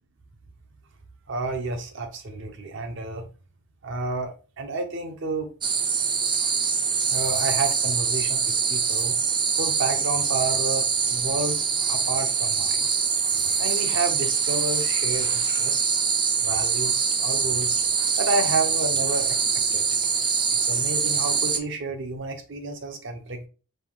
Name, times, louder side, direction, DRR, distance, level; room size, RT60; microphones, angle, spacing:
voice 1, 1.3-3.3 3.8-5.5 7.1-9.2 9.6-12.9 13.6-16.0 16.4-17.8 18.2-19.4 19.7-19.8 20.5-23.5, right 3 dB, 60° right, 0.8 m, -30 dB
sound 1, 5.6-21.6, right 6 dB, 20° right, 0.4 m, -24 dB
5.2 x 2.3 x 3.7 m
head